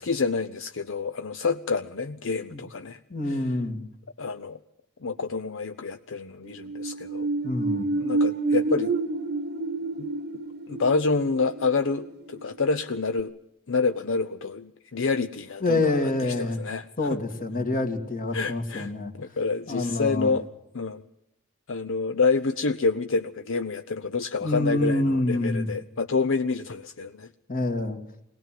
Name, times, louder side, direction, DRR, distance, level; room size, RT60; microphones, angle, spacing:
voice 1, 0.0-3.0 3.3-3.4 4.2-4.6 5.0-7.3 8.0-8.9 10.0-10.1 10.7-13.3 13.7-16.8 17.1-17.2 18.3-18.9 19.2-20.5 20.7-21.0 21.7-27.3, left 4 dB, 65° left, 10 dB, 0.7 m, -28 dB
voice 2, 3.1-3.8 7.4-7.9 15.6-16.6 17.0-19.1 19.7-20.3 24.4-25.7 27.5-28.0, left 2 dB, 40° left, 6 dB, 2.4 m, -26 dB
sound 1, 6.5-12.8 13.2-13.3, right 3 dB, 50° right, 1.0 m, -29 dB
22.5 x 18.5 x 7.6 m, 0.79 s
head